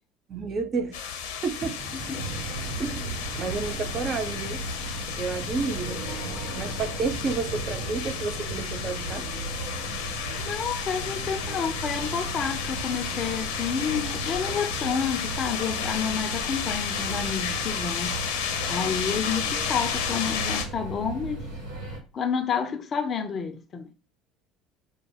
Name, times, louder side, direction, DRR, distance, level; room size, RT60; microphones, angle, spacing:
voice 1, 0.3-1.0 1.4-1.8 2.8-3.1 3.4-4.6 5.2-6.0 6.6-9.2, right 4 dB, 35° right, 0.8 m, -30 dB
sound 1, 0.9-20.7, left 7 dB, 65° left, 0.8 m, -32 dB
sound 2, 1.8-9.9, right 4 dB, 60° right, 2.7 m, -43 dB
voice 2, 1.9-2.3 10.4-18.2 18.7-21.4 22.1-23.9, left 6 dB, 35° left, 0.6 m, -30 dB
sound 3, 2.1-22.0, right 3 dB, 80° right, 1.8 m, -36 dB
4.9 x 2.3 x 4.6 m
figure-of-eight pair, 60°, 0 cm